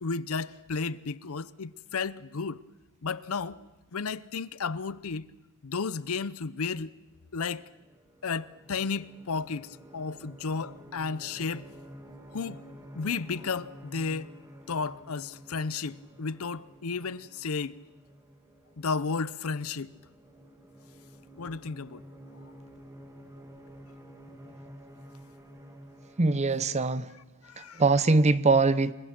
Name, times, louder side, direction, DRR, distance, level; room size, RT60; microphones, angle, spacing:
voice 1, 0.0-2.6 3.0-5.3 5.6-6.9 7.3-7.6 8.2-11.7 12.3-12.7 12.9-14.3 14.7-17.8 18.8-19.9 21.4-22.0 27.4-27.8, left 4 dB, 70° left, 0.7 m, -33 dB
sound 1, 7.6-26.9, equal, 15° right, 2.4 m, -51 dB
voice 2, 26.2-27.1 27.6-28.9, right 3 dB, 30° right, 0.7 m, -23 dB
27.5 x 22.5 x 6.0 m
head